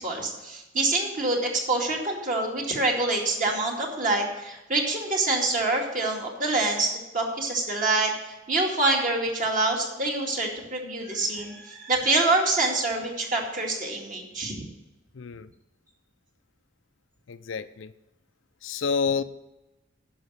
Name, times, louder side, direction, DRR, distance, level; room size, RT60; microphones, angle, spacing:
voice 1, 0.0-14.7, right 2 dB, 45° right, 0 dB, 2.3 m, -26 dB
voice 2, 15.2-15.5 17.3-17.9 18.6-19.2, left 5 dB, 75° left, 12 dB, 0.5 m, -28 dB
10.5 x 6.2 x 8.0 m, 1.0 s
head